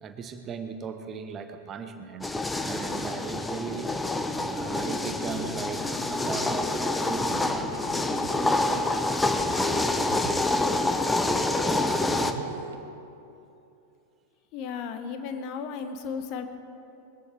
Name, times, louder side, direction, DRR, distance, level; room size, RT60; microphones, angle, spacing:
voice 1, 0.0-2.3 2.6-3.9 4.5-7.9, right 6 dB, 25° right, 8 dB, 1.0 m, -37 dB
sound 1, 2.2-12.3, left 2 dB, 10° left, 0.8 m, -27 dB
sound 2, 4.3-12.8, right 4 dB, 60° right, 1.1 m, -42 dB
voice 2, 14.5-16.6, left 6 dB, 40° left, 8 dB, 1.0 m, -34 dB
21.0 x 14.5 x 3.5 m, 2.8 s
figure-of-eight pair, 90°, 0 cm